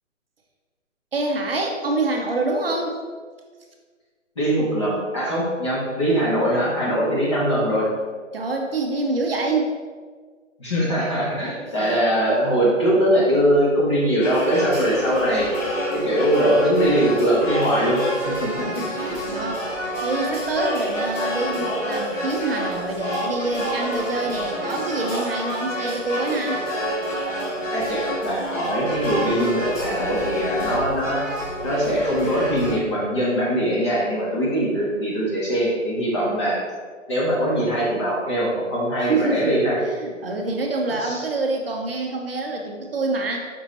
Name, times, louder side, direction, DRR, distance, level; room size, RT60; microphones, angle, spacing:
voice 1, 1.1-3.0 8.3-9.8 11.8-11.9 18.7-26.6 39.0-39.5 39.8-43.5, right 3 dB, 50° right, 1 dB, 0.5 m, -26 dB
voice 2, 4.4-7.9 10.6-15.5 15.9-18.8 27.7-31.2 31.6-36.6 37.1-39.8 41.0-41.2, equal, 20° left, -6 dB, 0.7 m, -22 dB
sound 1, 14.2-32.8, equal, 80° left, 1.4 m, -28 dB
5.1 x 2.7 x 3.2 m, 1.6 s
hypercardioid pair, 155°, 39 cm